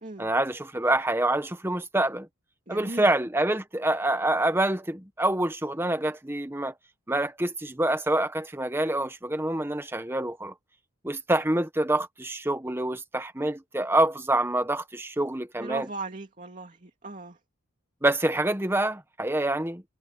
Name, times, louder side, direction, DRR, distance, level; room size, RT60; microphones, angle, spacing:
voice 1, 0.2-2.3 2.7-6.7 7.1-10.5 11.0-15.9 18.0-19.8, right 1 dB, 10° right, 1.1 m, -26 dB
voice 2, 2.7-3.1 15.6-17.4, right 3 dB, 35° right, 2.6 m, -38 dB
head